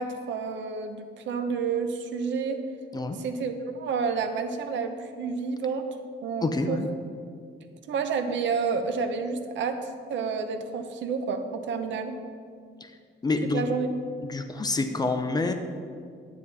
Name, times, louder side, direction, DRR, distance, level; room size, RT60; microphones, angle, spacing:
voice 1, 0.0-2.6 3.2-5.9 6.2-6.8 7.9-12.2 13.5-13.9, right 5 dB, 70° right, 7 dB, 0.8 m, -30 dB
voice 2, 6.4-6.9 12.8-12.9 13.2-13.7 14.3-15.5, left 3 dB, 20° left, 7 dB, 0.5 m, -27 dB
9.9 x 9.3 x 4.1 m, 2.2 s
cardioid pair, 180°, 20 cm